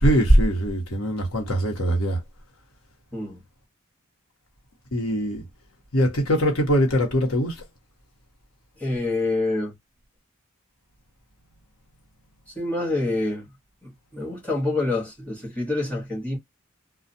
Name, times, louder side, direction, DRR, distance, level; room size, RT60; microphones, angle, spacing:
voice 1, 0.0-2.2 4.9-5.4 5.9-7.6, equal, 85° left, 1.2 m, -21 dB
voice 2, 8.8-9.7 12.6-13.5 13.8-16.4, left 2 dB, 5° left, 1.1 m, -27 dB
2.4 x 2.3 x 2.6 m
head